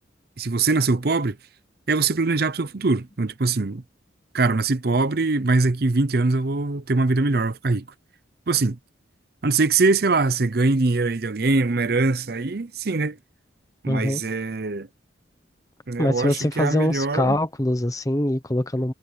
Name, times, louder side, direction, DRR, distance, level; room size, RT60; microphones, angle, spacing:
voice 1, 0.4-1.4 1.9-3.8 4.3-7.8 8.5-8.8 9.4-13.2 13.8-14.9 15.9-17.4, right 3 dB, 55° right, 0.7 m, -22 dB
voice 2, 13.9-14.2 16.0-18.9, left 1 dB, 20° left, 1.0 m, -23 dB
head